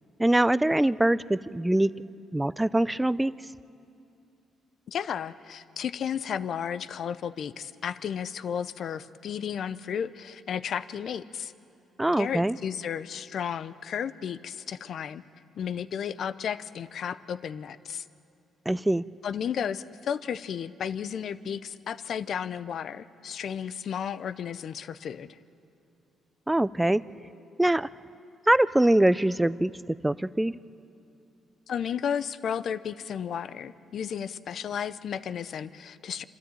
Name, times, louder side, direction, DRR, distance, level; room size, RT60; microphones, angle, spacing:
voice 1, 0.2-1.9 2.3-3.3 12.0-12.6 18.7-19.0 26.5-27.0 27.6-27.9 28.5-30.5, right 1 dB, 10° right, 18 dB, 0.4 m, -23 dB
voice 2, 4.9-11.5 12.2-15.2 15.6-18.1 19.2-25.4 31.7-36.2, left 8 dB, 60° left, 15 dB, 0.6 m, -33 dB
26.0 x 13.0 x 9.1 m, 2.6 s
cardioid pair, 90°, 0 cm